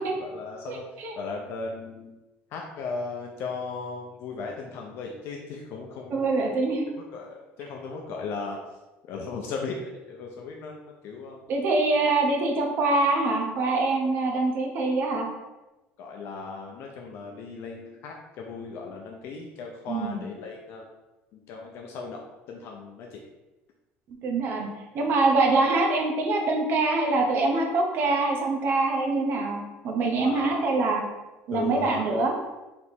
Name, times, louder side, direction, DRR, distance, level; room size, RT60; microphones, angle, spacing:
voice 1, 0.0-0.8 1.2-2.1 2.5-6.3 7.1-8.6 9.0-11.4 16.0-20.8 21.3-22.2 22.5-23.2 30.2-30.7 31.5-32.1, left 4 dB, 60° left, 0 dB, 0.5 m, -37 dB
voice 2, 0.7-1.1 6.1-6.9 11.5-15.3 19.9-20.2 24.2-24.7 24.9-31.0 31.5-32.3, right 3 dB, 50° right, 1 dB, 0.8 m, -24 dB
3.4 x 2.9 x 4.3 m, 1.1 s
cardioid pair, 145°, 5 cm